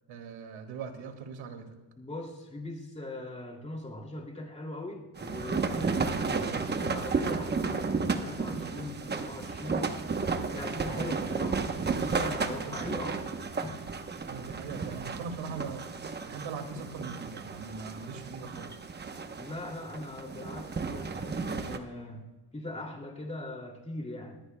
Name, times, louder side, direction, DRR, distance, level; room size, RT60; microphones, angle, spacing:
voice 1, 0.1-1.7 5.8-6.0 10.7-11.3 12.5-12.9 14.2-15.8 16.3-18.8, right 5 dB, 70° right, 5 dB, 2.2 m, -41 dB
voice 2, 2.0-9.9 10.5-11.6 12.0-13.3 13.6-13.8 19.4-22.3 22.5-24.4, left 2 dB, 15° left, 1 dB, 2.5 m, -40 dB
sound 1, 5.1-21.8, right 4 dB, 20° right, 0.9 m, -33 dB
22.0 x 15.0 x 2.2 m, 1.2 s
cardioid pair, 125°, 49 cm